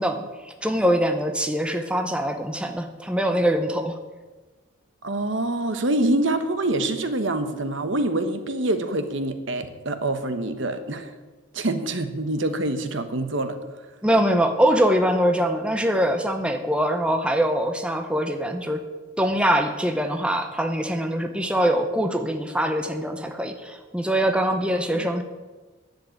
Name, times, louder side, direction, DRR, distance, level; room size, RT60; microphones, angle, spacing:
voice 1, 0.0-4.0 14.0-18.8 19.2-25.2, equal, 5° right, 6 dB, 0.8 m, -23 dB
voice 2, 5.0-11.1 11.5-13.6 24.9-25.1, right 2 dB, 65° right, 9 dB, 1.1 m, -25 dB
10.5 x 7.6 x 9.2 m, 1.3 s
head